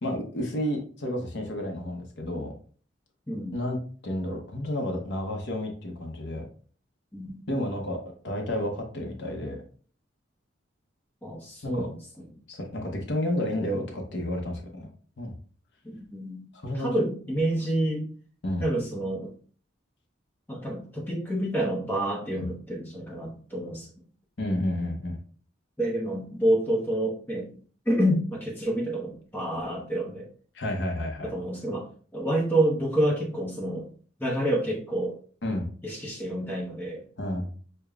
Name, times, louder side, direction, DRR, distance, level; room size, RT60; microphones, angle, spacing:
voice 1, 0.0-2.5 3.5-3.8 4.0-6.5 7.5-9.6 11.6-11.9 12.5-14.9 15.2-15.3 16.5-16.9 18.4-18.6 22.3-22.5 24.4-25.2 30.5-31.3 35.4-35.7 37.2-37.5, left 1 dB, 60° left, 2 dB, 0.8 m, -31 dB
voice 2, 3.3-3.6 7.1-7.4 11.2-12.3 15.8-16.4 16.7-18.1 18.6-19.3 20.5-23.9 25.8-27.5 27.9-30.3 31.2-33.9 34.2-35.2 35.8-37.1, right 1 dB, 10° left, -2 dB, 0.8 m, -28 dB
6.6 x 2.2 x 2.3 m, 0.43 s
head